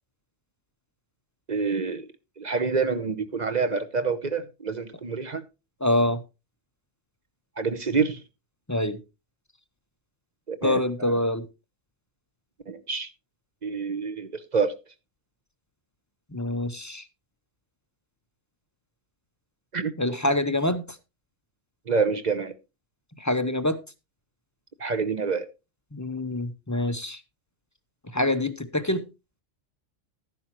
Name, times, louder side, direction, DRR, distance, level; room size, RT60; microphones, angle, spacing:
voice 1, 1.5-2.1 2.4-5.4 7.6-8.2 10.5-11.1 12.7-13.1 13.6-14.8 19.7-19.9 21.9-22.5 24.8-25.5, right 5 dB, 40° right, 0.8 m, -27 dB
voice 2, 5.8-6.2 8.7-9.0 10.6-11.5 16.3-17.0 20.0-20.8 23.2-23.8 25.9-27.2 28.1-29.0, left 1 dB, 20° left, 0.6 m, -25 dB
12.5 x 10.5 x 3.0 m
omnidirectional pair, 1.3 m